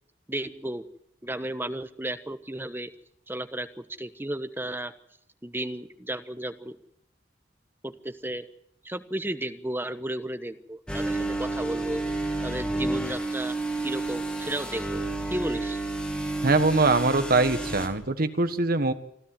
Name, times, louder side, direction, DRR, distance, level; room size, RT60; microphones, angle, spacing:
voice 1, 0.3-0.8 1.2-2.9 3.3-4.9 5.4-6.8 7.8-8.4 8.8-12.0 12.4-15.0 15.3-15.8, right 1 dB, 10° right, 9 dB, 1.1 m, -34 dB
sound 1, 10.9-17.9, right 2 dB, 5° left, 2.6 m, -30 dB
voice 2, 16.4-18.9, right 3 dB, 55° right, 10 dB, 1.4 m, -23 dB
26.5 x 13.0 x 7.8 m, 0.74 s
head